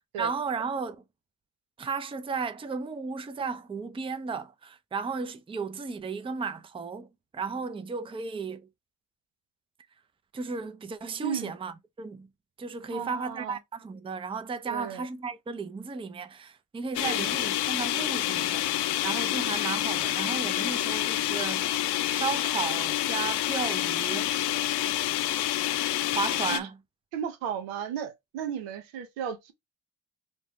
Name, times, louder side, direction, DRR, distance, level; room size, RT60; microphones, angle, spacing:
voice 1, 0.2-1.0 1.8-7.1 7.3-8.7 10.3-12.3 12.6-18.7 19.0-21.7 22.1-24.3 26.1-26.8, right 5 dB, 10° right, 0.4 m, -34 dB
voice 2, 11.2-11.5 12.9-13.6 14.7-15.1 17.0-17.4 26.5-26.7 27.1-29.5, right 8 dB, 85° right, 0.8 m, -35 dB
sound 1, 16.9-26.6, left 14 dB, 60° left, 0.6 m, -28 dB
4.5 x 2.1 x 2.8 m
hypercardioid pair, 55°, 46 cm